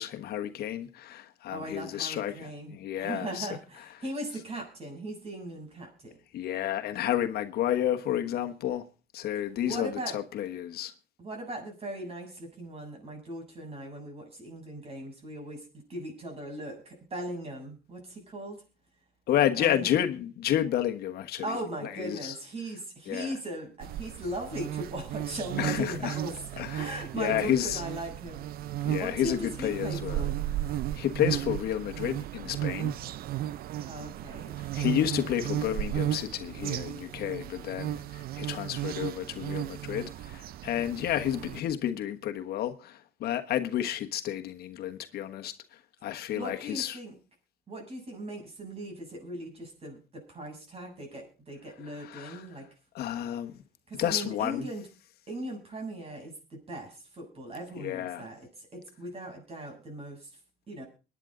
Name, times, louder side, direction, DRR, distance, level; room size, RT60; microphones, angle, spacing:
voice 1, 0.0-3.5 6.3-8.9 9.1-10.9 19.3-21.6 21.8-22.3 23.1-23.4 25.6-26.2 26.6-27.8 28.8-30.2 30.9-32.9 34.7-47.0 52.0-52.5 52.9-53.6 53.9-54.7 57.8-58.3, left 11 dB, 70° left, 1.3 m, -31 dB
voice 2, 1.5-6.2 9.6-10.1 11.2-18.6 19.6-19.9 21.4-28.5 29.0-30.4 33.9-34.5 46.3-47.1 47.7-52.7 53.9-54.9 55.3-60.3 60.7-60.8, right 1 dB, 35° right, 7.8 m, -39 dB
sound 1, 23.8-41.6, right 12 dB, 60° right, 0.6 m, -35 dB
23.0 x 9.9 x 3.9 m
cardioid pair, 110°, 17 cm